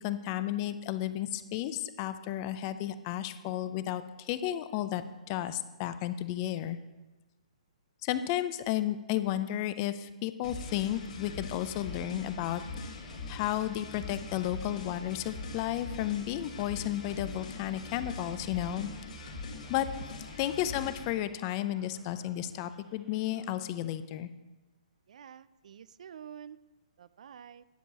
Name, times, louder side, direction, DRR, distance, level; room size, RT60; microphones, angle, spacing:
voice 1, 0.0-6.8 8.0-13.0 13.3-18.9 19.7-19.9 20.4-24.3, left 12 dB, 35° left, 12 dB, 0.5 m, -33 dB
sound 1, 10.4-21.1, left 3 dB, 70° left, 2.1 m, -42 dB
Male speech man speaking, 11.7-23.7, equal, 15° right, 1.6 m, -59 dB
voice 2, 25.1-26.6 27.0-27.6, right 8 dB, 70° right, 17 dB, 0.4 m, -49 dB
10.5 x 4.5 x 6.8 m, 1.1 s
hypercardioid pair, 140°, 4 cm